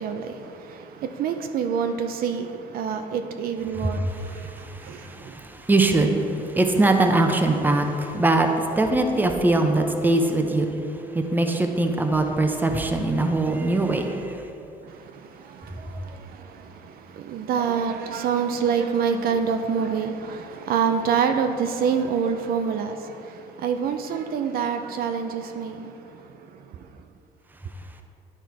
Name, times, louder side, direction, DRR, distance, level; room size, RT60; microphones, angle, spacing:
voice 1, 0.0-5.1 14.9-25.9, right 6 dB, 60° right, 0.5 m, -27 dB
voice 2, 3.7-14.4, right 2 dB, 10° right, 0.7 m, -22 dB
10.5 x 4.4 x 4.6 m
cardioid pair, 110°, 17 cm